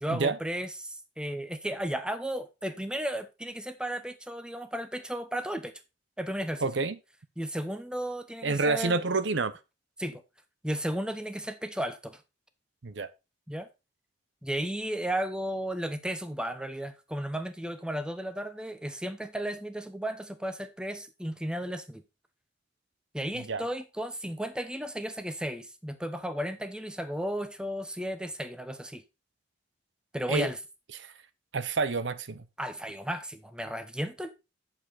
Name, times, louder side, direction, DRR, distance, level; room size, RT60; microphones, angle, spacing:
voice 1, 0.0-5.7 6.2-6.6 7.4-9.1 10.0-10.2 10.6-12.2 13.5-13.7 14.4-22.0 23.1-29.0 30.1-30.6 32.6-34.3, equal, 5° right, 0.8 m, -34 dB
voice 2, 6.6-7.0 8.4-9.5 12.8-13.1 23.3-23.7 30.3-30.5 31.0-31.1 31.5-32.5, right 3 dB, 75° right, 0.8 m, -28 dB
8.9 x 7.0 x 4.2 m
head